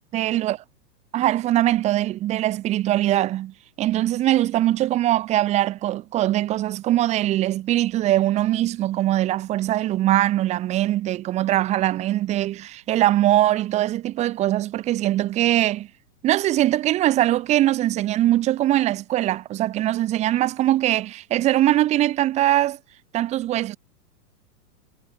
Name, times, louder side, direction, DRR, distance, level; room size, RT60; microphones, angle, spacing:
voice 1, 0.1-0.6 1.1-15.9 16.2-22.8 23.1-23.8, right 14 dB, 15° right, 2.3 m, -22 dB
supercardioid pair, 180°, 47 cm